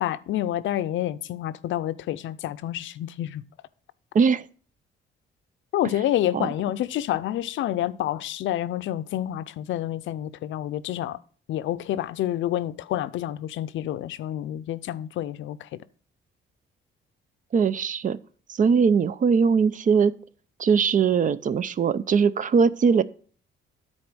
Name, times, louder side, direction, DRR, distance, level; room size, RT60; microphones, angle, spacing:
voice 1, 0.0-3.4 5.7-11.2 11.5-15.7, left 12 dB, 75° left, 0.5 m, -28 dB
voice 2, 4.1-4.5 6.3-6.5 17.5-18.2 18.5-20.1 20.6-23.0, right 6 dB, 40° right, 0.5 m, -21 dB
9.6 x 4.3 x 6.1 m
cardioid pair, 90°, 20 cm